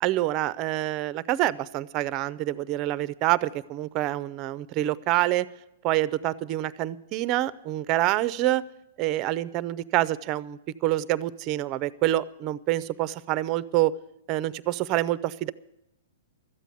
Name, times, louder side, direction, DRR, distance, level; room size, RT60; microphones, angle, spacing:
voice 1, 0.0-5.5 5.8-8.6 9.0-13.9 14.3-15.5, right 15 dB, 35° right, 18 dB, 0.5 m, -26 dB
13.0 x 8.3 x 9.2 m, 0.82 s
hypercardioid pair, 135°, 0 cm